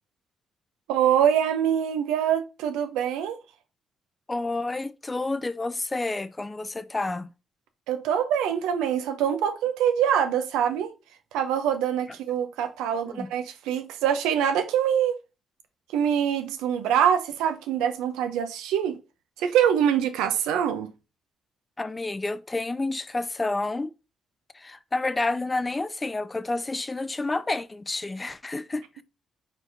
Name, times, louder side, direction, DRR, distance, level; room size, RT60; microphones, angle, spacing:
voice 1, 0.9-3.4 7.9-10.9 11.3-15.2 15.9-19.0 19.4-20.9, right 9 dB, 90° right, 0.6 m, -24 dB
voice 2, 4.3-7.3 13.1-13.3 21.8-23.9 24.5-29.0, left 2 dB, 25° left, 0.4 m, -29 dB
4.4 x 4.4 x 2.6 m
supercardioid pair, 55°, 0 cm